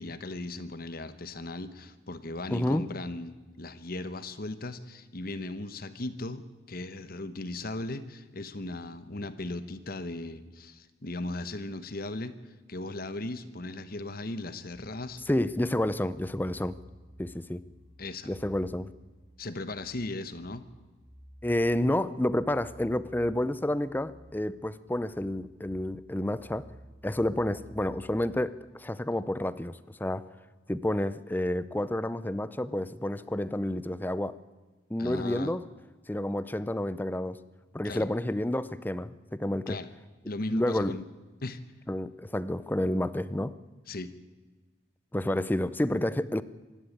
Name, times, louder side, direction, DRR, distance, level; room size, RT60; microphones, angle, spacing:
voice 1, 0.0-15.2 18.0-18.3 19.4-20.6 35.0-35.5 37.8-38.1 39.7-39.9 40.3-41.0 41.4-41.6 43.9-44.1, left 2 dB, 50° left, 12 dB, 1.0 m, -37 dB
voice 2, 2.5-2.8 15.3-16.8 17.2-17.6 18.3-18.9 21.4-26.7 27.0-30.3 30.7-34.4 34.9-35.6 36.1-37.4 37.7-39.8 40.5-40.9 41.9-43.5 45.1-46.4, left 1 dB, 10° left, 16 dB, 0.6 m, -29 dB
sound 1, 14.7-28.4, right 1 dB, 30° left, 3.5 m, -54 dB
25.5 x 11.5 x 8.6 m, 1.2 s
head